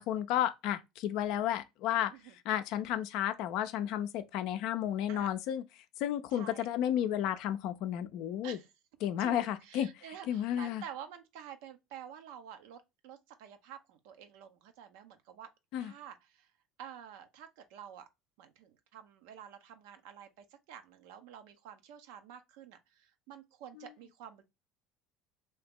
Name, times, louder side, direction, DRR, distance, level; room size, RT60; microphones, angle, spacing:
voice 1, 0.0-2.1 2.5-5.6 6.0-8.6 9.0-9.9 10.3-10.8 15.7-15.9, left 11 dB, 65° left, 0.4 m, -32 dB
voice 2, 6.3-6.7 8.4-8.7 9.2-15.5 15.8-16.5 16.8-18.1 18.4-24.4, right 9 dB, 70° right, 0.6 m, -49 dB
2.8 x 2.8 x 3.5 m
hypercardioid pair, 70°, 0 cm